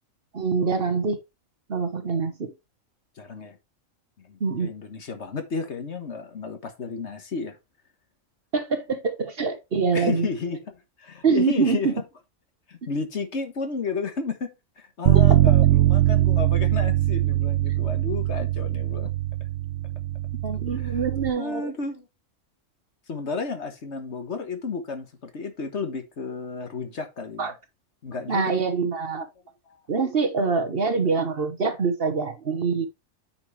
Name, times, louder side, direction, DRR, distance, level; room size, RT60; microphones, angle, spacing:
voice 1, 0.3-1.2 1.7-2.5 4.4-4.7 8.5-10.3 11.2-11.9 15.3-15.4 20.4-21.7 27.4-27.5 28.3-29.3 29.9-32.9, right 5 dB, 45° right, 1.2 m, -25 dB
voice 2, 3.2-3.6 4.2-7.6 9.9-11.9 12.7-19.1 20.7-21.0 21.4-22.1 23.1-27.5 28.0-28.6 29.7-29.8 30.8-31.3, left 4 dB, 55° left, 1.6 m, -32 dB
Bass guitar, 15.1-21.3, right 15 dB, 85° right, 1.0 m, -21 dB
9.0 x 5.7 x 3.2 m
omnidirectional pair, 1.4 m